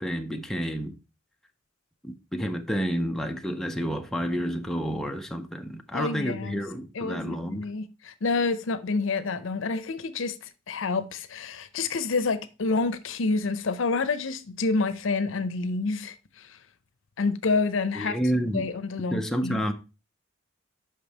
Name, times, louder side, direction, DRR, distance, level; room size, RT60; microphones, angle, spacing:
voice 1, 0.0-1.0 2.0-7.7 17.9-18.7 19.1-19.7, equal, ahead, 0.5 m, -30 dB
voice 2, 5.9-6.6 7.0-16.1 17.2-18.2 18.5-19.7, left 3 dB, 75° left, 0.6 m, -28 dB
5.5 x 5.2 x 4.0 m
head